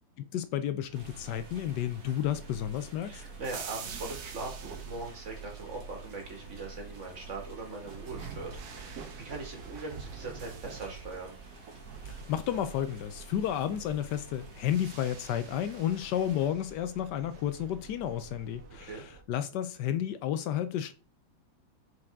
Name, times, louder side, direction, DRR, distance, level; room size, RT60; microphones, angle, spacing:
voice 1, 0.2-3.2 12.1-20.9, left 10 dB, 75° left, 1.1 m, -32 dB
sound 1, 0.9-19.2, right 5 dB, 60° right, 1.4 m, -46 dB
sound 2, 0.9-16.5, right 2 dB, 80° right, 2.7 m, -53 dB
voice 2, 3.0-11.3 18.8-19.0, right 3 dB, 40° right, 2.1 m, -41 dB
6.3 x 4.8 x 3.5 m
omnidirectional pair, 2.1 m